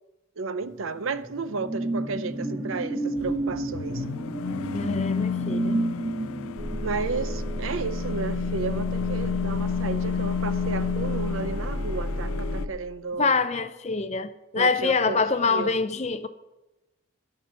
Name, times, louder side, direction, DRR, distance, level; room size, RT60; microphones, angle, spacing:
voice 1, 0.4-4.0 6.8-13.3 14.6-15.8, right 4 dB, 75° right, 0.6 m, -33 dB
sound 1, 0.7-9.7 10.0-10.3, right 2 dB, 15° right, 0.8 m, -32 dB
sound 2, 3.2-12.7, left 6 dB, 90° left, 0.4 m, -31 dB
voice 2, 4.7-5.8 13.2-16.3, left 4 dB, 30° left, 0.5 m, -25 dB
sound 3, 6.6-12.7, equal, 40° right, 1.1 m, -32 dB
12.0 x 5.8 x 7.5 m
head